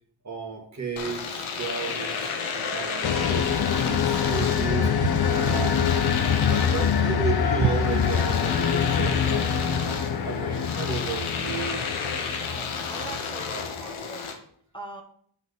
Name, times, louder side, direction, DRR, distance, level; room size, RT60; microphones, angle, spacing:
voice 1, 0.2-2.3 2.7-4.9 5.2-6.1 6.5-11.7, right 5 dB, 35° right, 1 dB, 1.5 m, -34 dB
Domestic sounds home sounds, 1.0-14.4, left 5 dB, 85° left, 1.0 m, -32 dB
sound 1, 3.0-13.8, left 7 dB, 50° left, 0.7 m, -25 dB
Walk footsteps, 4.8-9.3, right 8 dB, 55° right, 0.5 m, -31 dB
voice 2, 12.5-14.3 14.7-15.0, right 2 dB, 10° left, 0 dB, 1.0 m, -41 dB
8.9 x 4.1 x 3.5 m, 0.62 s
cardioid pair, 70°, 48 cm